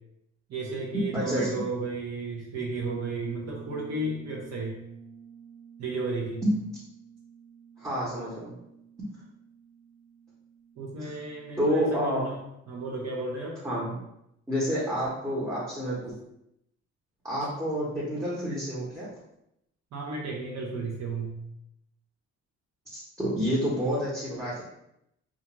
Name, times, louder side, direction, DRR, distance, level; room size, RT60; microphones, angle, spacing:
voice 1, 0.5-4.8 5.8-6.4 10.8-12.4 12.7-13.6 19.9-21.4, right 3 dB, 60° right, -3 dB, 0.7 m, -33 dB
voice 2, 1.1-1.5 6.4-6.5 7.8-8.5 9.0-9.1 11.0-11.1 11.6-12.2 13.6-13.9 14.5-16.1 17.2-19.1 22.9-24.6, equal, 10° right, -8 dB, 0.8 m, -29 dB
Bass guitar, 2.8-12.5, right 6 dB, 80° right, 1.4 m, -50 dB
2.4 x 2.4 x 2.9 m, 0.81 s
cardioid pair, 90°, 30 cm